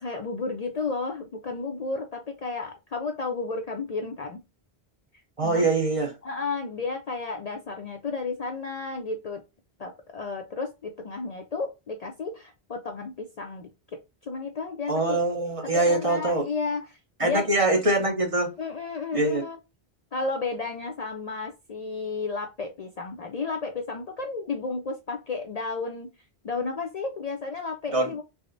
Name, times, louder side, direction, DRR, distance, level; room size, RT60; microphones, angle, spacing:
voice 1, 0.0-4.4 5.4-5.7 6.2-9.4 9.8-13.7 14.2-15.2 15.7-17.5 18.6-19.6 20.1-26.1 26.4-28.2, left 4 dB, 50° left, 0.5 m, -32 dB
voice 2, 5.4-6.1 14.9-16.4 17.2-18.5 19.1-19.4 27.9-28.1, right 2 dB, 35° right, 0.7 m, -23 dB
4.7 x 2.0 x 2.5 m
omnidirectional pair, 1.0 m